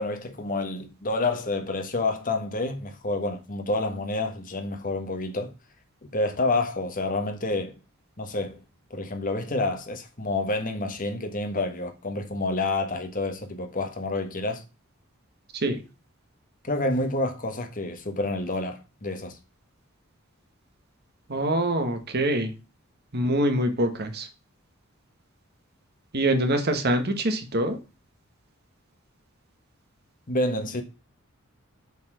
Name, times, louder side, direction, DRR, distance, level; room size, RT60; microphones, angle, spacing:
voice 1, 0.0-5.5 6.0-7.8 8.2-8.6 8.9-14.6 16.6-19.4 30.3-30.8, left 2 dB, 40° left, 1.5 m, -28 dB
voice 2, 21.3-22.5 23.1-24.3 26.1-27.8, right 1 dB, 50° right, 1.4 m, -24 dB
7.2 x 4.4 x 6.2 m
head